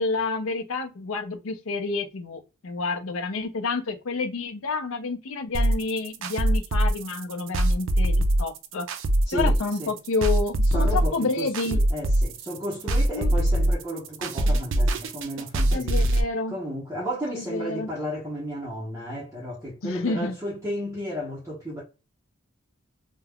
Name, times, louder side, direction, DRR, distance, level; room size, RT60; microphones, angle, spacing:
voice 1, 0.0-8.9 9.3-11.8 13.1-13.3 15.7-16.6 17.3-17.9 19.8-20.3, left 3 dB, 75° left, 0.6 m, -29 dB
sound 1, 5.5-16.2, right 1 dB, 60° right, 0.3 m, -23 dB
voice 2, 9.3-9.9 10.7-16.1 16.5-21.8, equal, 15° right, 0.8 m, -33 dB
2.3 x 2.2 x 3.4 m
head